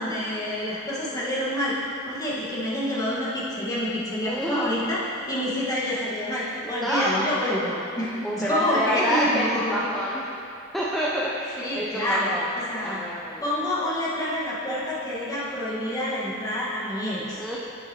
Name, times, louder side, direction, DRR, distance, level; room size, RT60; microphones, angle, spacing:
voice 1, 0.0-1.7 2.0-9.8 11.6-12.3 12.7-13.0 13.4-17.4, left 1 dB, 15° left, -8 dB, 1.4 m, -27 dB
voice 2, 4.2-4.7 6.6-7.3 8.2-10.2 10.7-12.5 12.8-13.4 17.3-17.6, equal, ahead, -7 dB, 0.5 m, -27 dB
7.6 x 7.3 x 2.9 m, 2.6 s
head